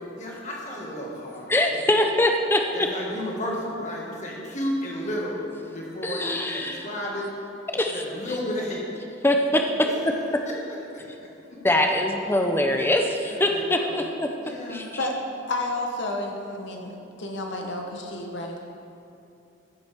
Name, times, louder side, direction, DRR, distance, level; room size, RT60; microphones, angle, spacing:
voice 1, 0.2-1.9 2.7-5.4 5.7-7.3 7.9-8.8 9.9-11.6 13.2-14.0 14.4-14.9, equal, 35° left, -3 dB, 1.7 m, -33 dB
voice 2, 1.5-2.6 6.0-6.8 7.7-8.0 9.2-9.9 11.6-14.3 14.7-14.8, left 1 dB, 10° left, 3 dB, 0.5 m, -23 dB
voice 3, 15.5-16.9 17.2-18.6, left 2 dB, 60° left, 2 dB, 0.9 m, -30 dB
14.5 x 7.5 x 3.5 m, 2.8 s
head